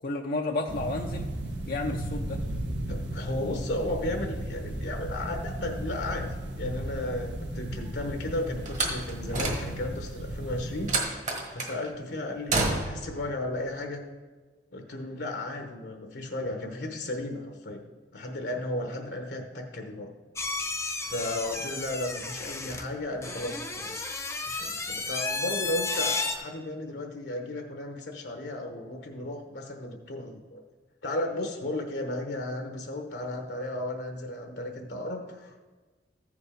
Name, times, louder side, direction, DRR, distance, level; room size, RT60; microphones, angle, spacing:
voice 1, 0.0-1.3 1.7-2.4, left 2 dB, 50° left, 1 dB, 0.6 m, -31 dB
sound 1, 0.7-11.0, right 1 dB, 85° right, 1.3 m, -35 dB
voice 2, 2.8-11.3 11.5-14.0 14.7-17.8 18.1-20.1 21.0-24.0 24.5-30.6 31.0-35.6, left 1 dB, 70° left, 3 dB, 1.0 m, -34 dB
Slam, 8.7-10.0 10.9-11.8 12.5-13.1, right 2 dB, 45° right, 1.5 m, -29 dB
sound 2, 20.4-26.4, left 3 dB, 15° left, 0.7 m, -33 dB
14.0 x 5.2 x 5.0 m, 1.3 s
head